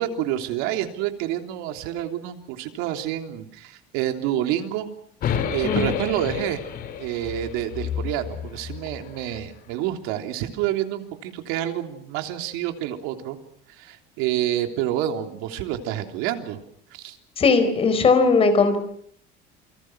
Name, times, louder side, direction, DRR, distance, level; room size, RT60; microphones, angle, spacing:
voice 1, 0.0-4.9 5.5-6.6 7.0-13.4 13.8-16.6 16.9-17.2, right 12 dB, 85° right, 5 dB, 3.3 m, -28 dB
sound 1, 5.2-9.4, left 8 dB, 45° left, 3.9 m, -30 dB
voice 2, 17.4-18.8, left 4 dB, 30° left, 10 dB, 4.6 m, -18 dB
28.5 x 24.5 x 6.3 m, 0.66 s
cardioid pair, 160°, 21 cm